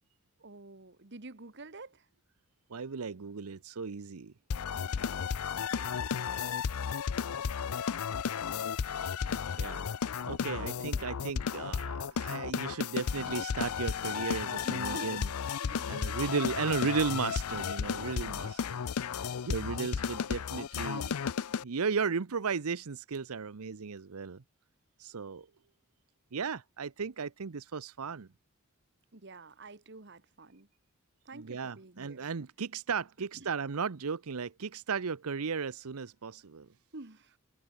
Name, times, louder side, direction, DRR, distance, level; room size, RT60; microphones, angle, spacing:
voice 1, 0.4-2.1 4.7-5.2 5.7-6.0 10.6-11.1 14.6-15.2 15.6-16.1 20.7-21.0 29.1-30.7 31.2-32.2 33.4-33.5 36.9-37.3, right 2 dB, 55° right, 1.5 m, -48 dB
voice 2, 2.7-4.3 9.6-9.9 10.2-15.3 15.9-18.8 19.5-21.2 21.6-24.4 25.0-25.5 26.3-28.3 31.3-36.7, right 5 dB, 85° right, 0.7 m, -35 dB
sound 1, 4.5-21.6, left 7 dB, 90° left, 0.5 m, -34 dB
head